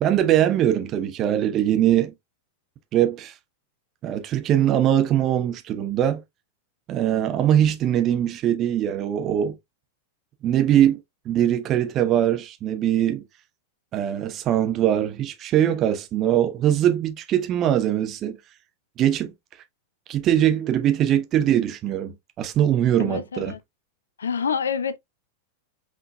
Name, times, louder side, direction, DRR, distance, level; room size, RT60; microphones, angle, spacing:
voice 1, 0.0-2.1 2.9-3.3 4.0-6.2 6.9-9.6 10.4-13.2 13.9-18.4 19.0-19.3 20.1-23.5, right 11 dB, 30° right, 0.9 m, -22 dB
voice 2, 23.0-23.6 24.2-25.0, left 6 dB, 70° left, 0.5 m, -27 dB
5.7 x 3.7 x 2.3 m
figure-of-eight pair, 90°, 0 cm